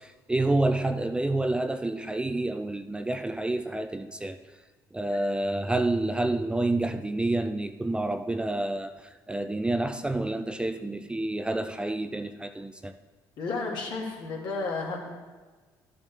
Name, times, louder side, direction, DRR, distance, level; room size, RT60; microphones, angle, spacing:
voice 1, 0.0-4.4 4.9-8.9 9.3-13.0, right 2 dB, 10° right, 0.4 m, -28 dB
voice 2, 13.4-15.2, left 3 dB, 65° left, 2.1 m, -32 dB
12.0 x 7.2 x 3.4 m
supercardioid pair, 85°, 8 cm